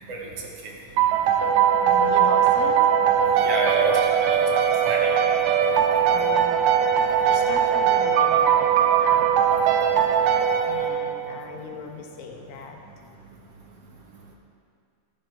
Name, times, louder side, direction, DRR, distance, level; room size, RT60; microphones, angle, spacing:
voice 1, 0.1-0.5 3.4-5.2, right 3 dB, 60° right, -1 dB, 1.8 m, -29 dB
sound 1, 1.0-11.3, right 8 dB, 80° right, 1.6 m, -20 dB
voice 2, 1.8-2.8 6.1-6.9 7.3-9.3 10.7-12.8, left 5 dB, 85° left, 2 dB, 2.7 m, -37 dB
14.0 x 11.0 x 3.4 m, 2.3 s
omnidirectional pair, 3.9 m